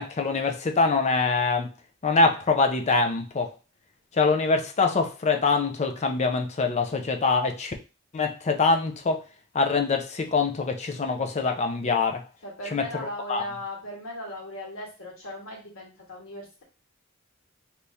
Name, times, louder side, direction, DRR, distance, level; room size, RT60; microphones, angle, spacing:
voice 1, 0.0-1.7 2.0-3.5 4.1-7.7 8.1-9.2 9.5-12.2 12.7-13.4, left 4 dB, 35° left, 5 dB, 0.4 m, -24 dB
voice 2, 12.4-16.6, left 1 dB, 75° left, -2 dB, 1.6 m, -38 dB
2.9 x 2.7 x 3.4 m, 0.31 s
head